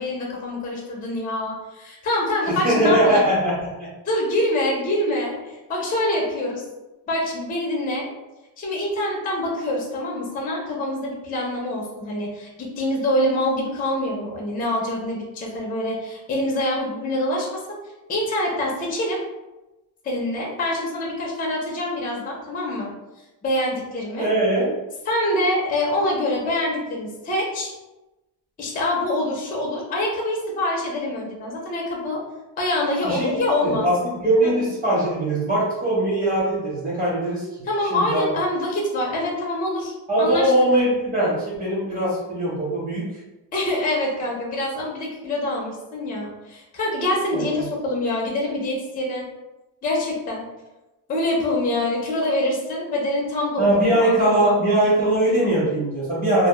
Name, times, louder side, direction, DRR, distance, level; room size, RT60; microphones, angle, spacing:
voice 1, 0.0-3.2 4.1-6.6 7.1-8.1 8.6-17.6 18.1-19.2 20.0-22.9 23.4-24.3 25.1-27.7 28.6-32.2 32.6-33.9 34.4-34.5 37.7-39.9 40.2-40.5 43.5-49.3 49.8-50.5 51.1-54.6, left 1 dB, 20° left, -2 dB, 0.4 m, -25 dB
voice 2, 2.5-3.9 24.2-24.7 33.0-37.5 37.8-38.3 40.1-43.1 47.3-47.6 53.6-56.5, right 1 dB, 20° right, -7 dB, 1.0 m, -21 dB
2.1 x 2.0 x 3.0 m, 1.0 s
cardioid pair, 145°, 43 cm